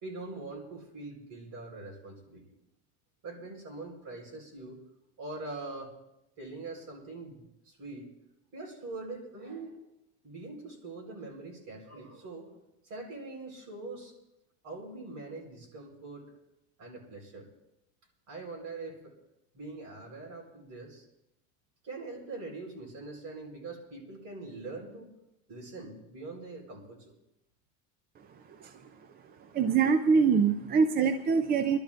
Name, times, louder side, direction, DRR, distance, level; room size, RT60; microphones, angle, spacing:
voice 1, 0.0-2.4 3.2-4.8 5.2-5.9 6.4-8.1 8.5-9.9 10.2-14.1 14.6-16.3 16.8-17.5 18.3-19.1 19.5-21.0 21.8-25.1 25.5-27.1, right 3 dB, 45° right, 1 dB, 4.1 m, -43 dB
voice 2, 28.5-28.9 29.4-31.8, right 5 dB, 25° right, 8 dB, 0.4 m, -25 dB
25.5 x 12.0 x 2.5 m, 0.88 s
cardioid pair, 145°, 39 cm